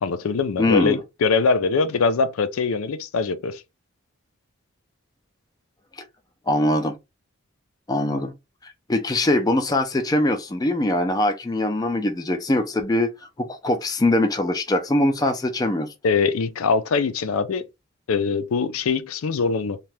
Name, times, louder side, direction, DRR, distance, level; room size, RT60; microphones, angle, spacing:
voice 1, 0.0-3.6 16.0-17.7 18.1-19.8, left 4 dB, 80° left, 0.4 m, -22 dB
voice 2, 0.6-1.0 6.0-6.1 6.5-7.0 7.9-8.3 8.6-13.1 13.4-15.9, left 1 dB, 20° left, 0.3 m, -22 dB
2.7 x 2.2 x 3.2 m
head